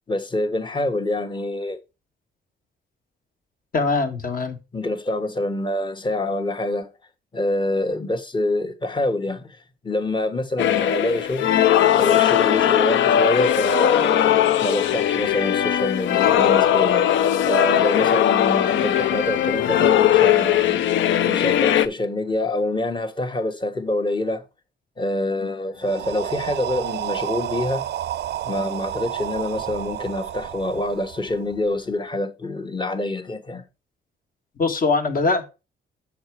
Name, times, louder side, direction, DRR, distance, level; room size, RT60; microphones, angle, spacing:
voice 1, 0.1-1.8 4.7-6.9 7.3-11.6 12.0-14.2 14.6-20.8 21.2-24.5 25.0-27.9 28.4-33.7, left 1 dB, 25° left, 1.3 m, -26 dB
voice 2, 3.7-4.6 34.6-35.4, left 3 dB, 45° left, 1.7 m, -22 dB
sound 1, 10.6-21.9, left 11 dB, 70° left, 0.6 m, -19 dB
sound 2, 25.8-31.7, right 12 dB, 60° right, 0.4 m, -30 dB
6.5 x 6.0 x 4.7 m
cardioid pair, 90°, 20 cm